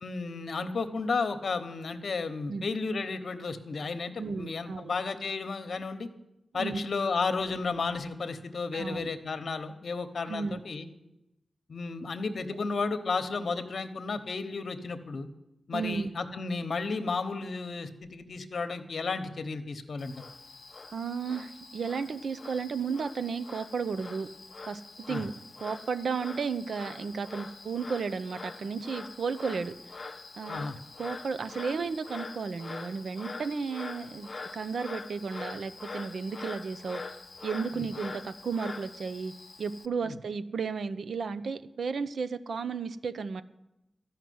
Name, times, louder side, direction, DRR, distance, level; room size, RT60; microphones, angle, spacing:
voice 1, 0.0-6.1 6.5-10.9 11.7-15.3 15.7-20.1 25.1-25.2 30.5-30.8 37.7-37.8 40.0-40.1, left 4 dB, 65° left, 10 dB, 1.0 m, -33 dB
voice 2, 4.2-4.9 6.6-6.8 8.7-9.1 10.3-10.6 15.7-16.1 20.9-24.3 24.7-24.8 25.1-25.3 25.6-30.0 30.4-30.7 31.0-37.1 37.4-39.3 39.6-43.4, right 5 dB, 80° right, 12 dB, 0.6 m, -33 dB
Frog, 20.0-39.9, left 3 dB, 45° left, 0.6 m, -44 dB
13.5 x 5.8 x 9.3 m, 0.91 s
wide cardioid pair, 90°, 0 cm